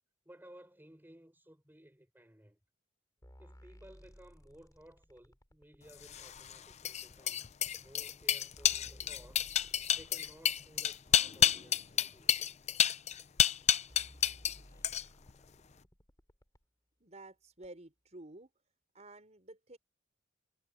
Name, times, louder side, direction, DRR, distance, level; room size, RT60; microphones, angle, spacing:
voice 1, 0.2-2.6 3.4-7.5 7.8-9.4 9.9-12.4, right 1 dB, 10° right, 6.2 m, -58 dB
sound 1, 3.2-6.0 6.9-7.0 7.8-7.9 8.3-11.3 12.1-12.2 13.1-13.2 13.6-13.7 13.9-16.6 17.6-17.7, equal, 20° left, 4.2 m, -58 dB
sound 2, 6.0-14.6 14.8-15.3, left 9 dB, 35° left, 0.5 m, -30 dB
voice 2, 17.0-18.5 18.9-19.8, right 2 dB, 40° right, 5.0 m, -51 dB
head